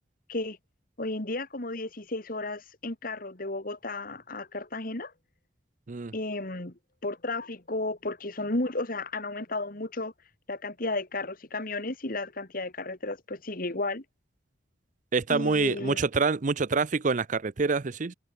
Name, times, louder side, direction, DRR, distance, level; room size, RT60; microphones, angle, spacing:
voice 1, 1.0-5.1 6.1-6.7 7.0-10.1 10.5-14.0 15.3-16.0, left 2 dB, 50° left, 2.6 m, -33 dB
voice 2, 15.1-18.1, right 4 dB, 45° right, 0.6 m, -26 dB
head